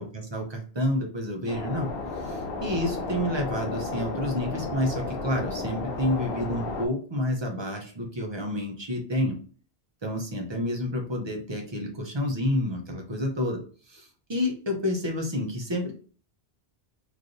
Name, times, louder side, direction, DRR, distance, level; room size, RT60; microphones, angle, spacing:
voice 1, 0.0-1.9 2.2-9.4 10.0-13.6 13.9-15.9, left 1 dB, 30° right, 1 dB, 0.6 m, -29 dB
sound 1, 1.5-6.9, left 3 dB, 65° left, 0.8 m, -33 dB
3.2 x 2.6 x 2.5 m, 0.41 s
omnidirectional pair, 1.1 m